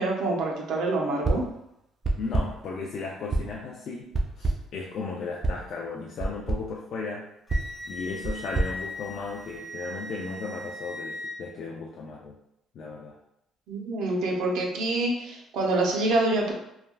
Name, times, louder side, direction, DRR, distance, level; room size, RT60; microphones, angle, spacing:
voice 1, 0.0-1.4 13.7-16.5, right 2 dB, 75° right, 0 dB, 0.6 m, -26 dB
sound 1, 1.2-1.6 2.0-2.7 3.3-3.7 4.1-4.8 5.4-5.7 6.2-6.7 7.5-9.6, right 2 dB, 30° right, 0.3 m, -29 dB
voice 2, 2.2-7.3 7.8-12.4 12.7-13.2, left 4 dB, 55° left, -2 dB, 0.3 m, -35 dB
Wind instrument woodwind instrument, 7.5-11.4, left 1 dB, 5° left, 0.7 m, -39 dB
3.2 x 2.2 x 2.2 m, 0.80 s
cardioid pair, 145°, 0 cm